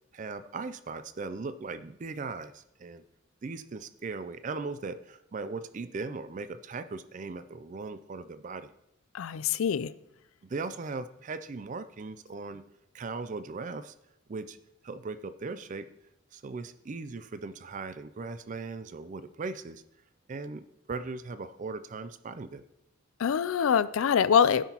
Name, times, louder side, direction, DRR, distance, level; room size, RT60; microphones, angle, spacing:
voice 1, 0.1-3.0 3.4-8.7 10.4-12.6 12.9-13.9 14.3-14.6 14.8-15.9 16.3-19.8 20.3-22.6, right 4 dB, 35° right, 0.4 m, -38 dB
voice 2, 9.1-9.9 23.2-24.7, left 7 dB, 75° left, 0.4 m, -24 dB
16.5 x 5.9 x 2.9 m
head